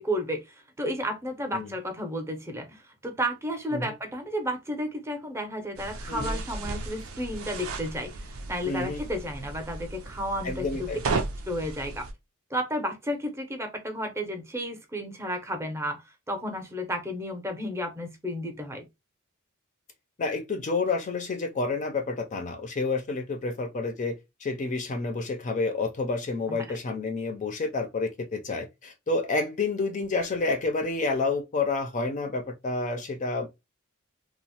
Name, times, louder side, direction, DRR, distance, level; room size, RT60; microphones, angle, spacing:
voice 1, 0.0-10.9 11.5-12.1 12.5-18.9 26.5-26.6, equal, 15° right, 0.6 m, -32 dB
sound 1, 5.8-12.1, right 3 dB, 80° right, 0.5 m, -35 dB
voice 2, 6.1-6.4 8.6-9.0 10.4-11.0 20.2-24.1 24.4-33.5, left 3 dB, 35° left, 0.4 m, -29 dB
2.9 x 2.0 x 2.8 m
head